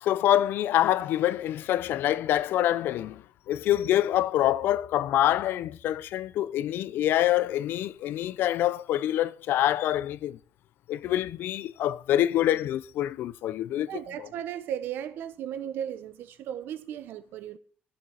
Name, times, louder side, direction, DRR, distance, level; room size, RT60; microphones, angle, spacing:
voice 1, 0.0-10.4 10.9-13.9 14.2-14.3, left 12 dB, 85° left, 0.6 m, -26 dB
voice 2, 13.9-17.6, right 10 dB, 80° right, 0.9 m, -36 dB
13.5 x 7.1 x 6.4 m
cardioid pair, 175°, 4 cm